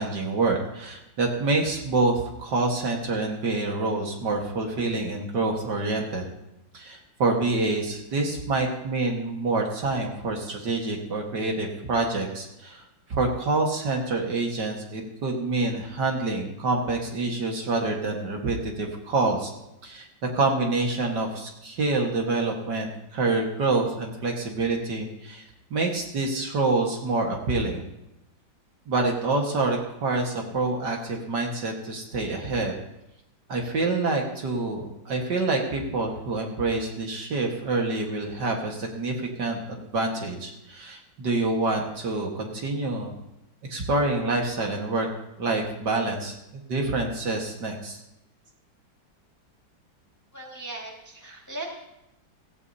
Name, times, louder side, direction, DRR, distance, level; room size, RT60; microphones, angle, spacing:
voice 1, 0.0-6.3 6.7-19.5 19.8-20.1 20.3-25.4 25.7-27.8 28.9-32.7 33.5-43.1 43.7-45.1 45.4-48.0, right 3 dB, 60° right, 1 dB, 2.1 m, -27 dB
voice 2, 50.3-51.7, right 2 dB, 10° left, -1 dB, 1.7 m, -38 dB
16.5 x 15.5 x 2.8 m, 0.88 s
omnidirectional pair, 2.2 m